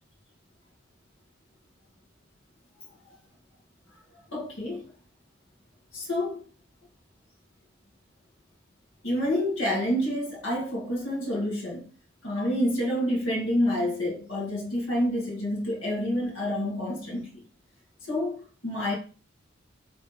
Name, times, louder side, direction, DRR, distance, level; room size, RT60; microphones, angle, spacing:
voice 1, 4.3-4.9 5.9-6.4 9.0-11.9 12.2-17.4 18.1-18.9, left 1 dB, 90° left, 2.4 m, -28 dB
6.8 x 3.8 x 4.4 m
head